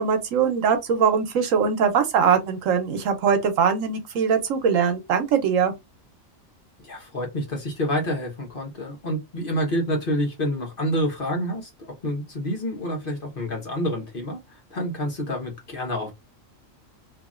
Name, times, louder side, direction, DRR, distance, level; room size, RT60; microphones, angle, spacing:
voice 1, 0.0-5.7, right 6 dB, 75° right, 1.1 m, -21 dB
voice 2, 6.8-16.1, equal, 45° left, 1.1 m, -28 dB
2.8 x 2.8 x 2.4 m
omnidirectional pair, 1.4 m